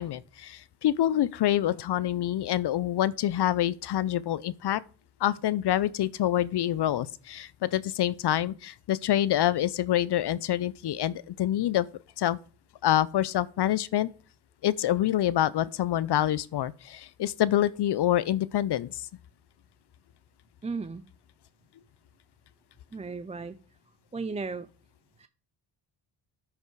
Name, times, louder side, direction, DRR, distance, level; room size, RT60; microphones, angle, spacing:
voice 1, 0.0-4.8 5.2-11.9 12.2-12.4 12.8-14.1 14.6-19.1, left 12 dB, 55° left, 0.6 m, -26 dB
voice 2, 20.6-21.0 22.9-23.6 24.1-24.7 25.2-25.3, right 4 dB, 15° right, 0.4 m, -35 dB
8.1 x 5.4 x 4.7 m
cardioid pair, 70°, 48 cm